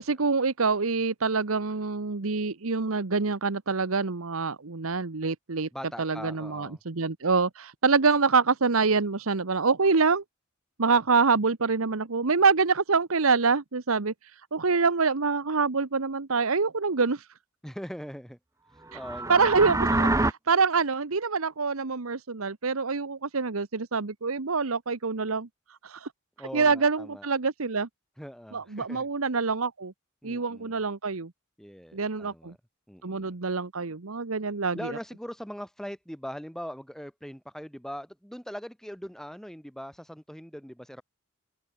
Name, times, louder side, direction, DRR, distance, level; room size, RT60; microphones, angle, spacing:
voice 1, 0.0-5.7 6.0-10.2 10.8-14.1 14.5-17.2 19.3-25.5 25.8-26.1 26.5-27.9 28.5-29.9 30.2-31.3 31.9-32.5 33.0-35.0, right 4 dB, 80° right, 1.1 m, -26 dB
voice 2, 5.7-6.8 17.6-18.4 18.7-19.4 26.4-27.3 28.2-29.1 30.2-30.8 31.6-32.6 32.9-33.4 34.7-41.0, equal, ahead, 6.9 m, -41 dB
sound 1, 18.9-20.3, right 2 dB, 15° right, 0.7 m, -25 dB
open air
head